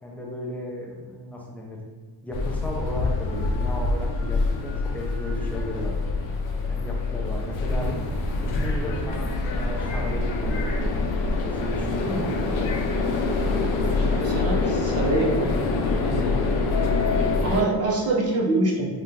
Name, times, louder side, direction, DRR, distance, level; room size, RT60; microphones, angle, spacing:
voice 1, 0.0-1.8 2.2-6.3 6.7-8.0 8.3-10.9 11.4-12.8 16.0-16.3, left 1 dB, 5° left, -2 dB, 0.4 m, -34 dB
sound 1, 2.3-17.6, left 3 dB, 80° left, 0.6 m, -25 dB
voice 2, 13.8-15.5 17.4-18.9, right 2 dB, 30° right, -3 dB, 0.8 m, -25 dB
3.5 x 2.4 x 2.8 m, 1.5 s
cardioid pair, 115°, 46 cm